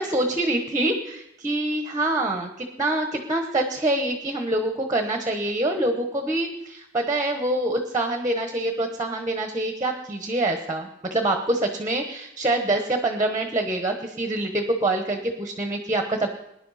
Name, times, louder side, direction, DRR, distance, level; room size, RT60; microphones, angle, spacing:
voice 1, 0.0-16.3, right 2 dB, 15° right, 5 dB, 1.0 m, -25 dB
19.5 x 10.5 x 4.1 m, 0.81 s
head